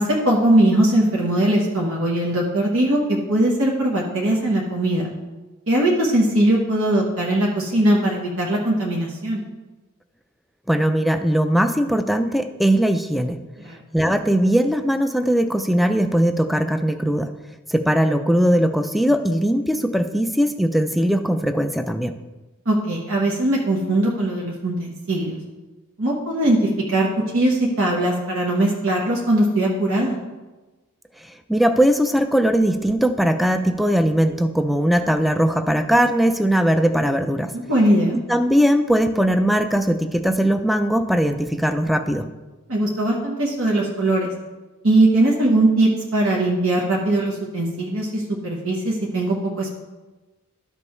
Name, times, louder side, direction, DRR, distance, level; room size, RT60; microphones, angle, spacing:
voice 1, 0.0-5.1 5.7-9.4 13.6-13.8 22.7-25.4 26.0-26.6 26.9-27.1 27.3-30.2 37.5-38.2 42.7-44.3 44.8-49.7, right 1 dB, 70° right, -2 dB, 1.2 m, -20 dB
voice 2, 10.7-13.4 13.9-17.3 17.7-22.1 31.5-37.5 38.1-42.3, equal, ahead, 8 dB, 0.4 m, -19 dB
12.5 x 5.4 x 3.1 m, 1.2 s
head